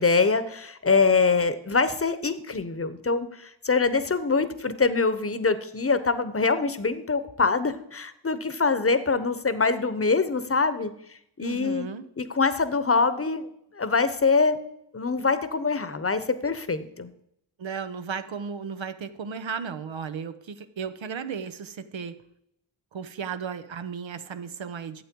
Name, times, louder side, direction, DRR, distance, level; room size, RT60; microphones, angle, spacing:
voice 1, 0.0-10.9 11.4-11.9 12.2-13.5 13.7-14.6 14.9-17.1, left 4 dB, 30° left, 13 dB, 1.0 m, -24 dB
voice 2, 11.4-12.0 17.6-22.1 22.9-25.0, right 6 dB, 70° right, 10 dB, 0.9 m, -35 dB
12.0 x 7.9 x 4.6 m, 0.75 s
cardioid pair, 55°, 47 cm